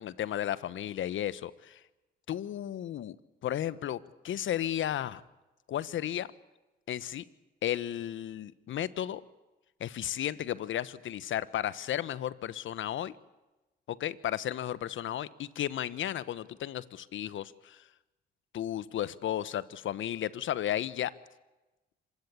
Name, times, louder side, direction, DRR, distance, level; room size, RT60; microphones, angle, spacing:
voice 1, 0.0-1.8 2.3-3.1 3.4-5.2 5.7-6.3 6.9-7.2 7.6-9.2 9.8-13.1 13.9-17.8 18.5-21.1, left 11 dB, 70° left, 17 dB, 1.2 m, -34 dB
25.5 x 20.5 x 8.5 m, 1.1 s
supercardioid pair, 65°, 21 cm